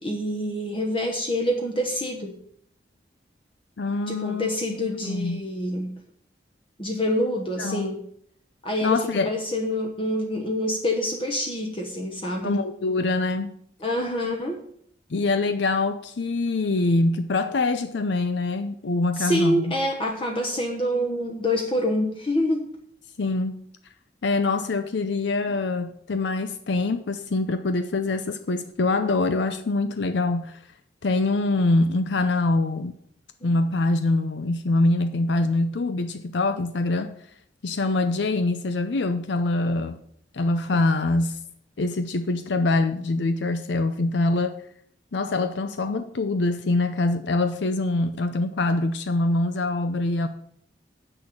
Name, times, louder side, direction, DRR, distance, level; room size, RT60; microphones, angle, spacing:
voice 1, 0.0-2.4 4.1-6.0 6.8-8.0 8.6-12.6 13.8-14.6 19.2-22.7 25.5-25.6 33.4-33.6, left 1 dB, 30° left, 1.1 m, -26 dB
voice 2, 3.8-5.4 7.6-7.9 8.8-9.3 12.4-13.5 15.1-19.7 23.2-23.6 24.2-30.6 31.0-32.9 33.4-37.1 37.6-40.0 40.3-41.4 41.8-44.6 45.1-50.3, left 2 dB, 75° left, 0.6 m, -24 dB
7.8 x 6.4 x 7.1 m
head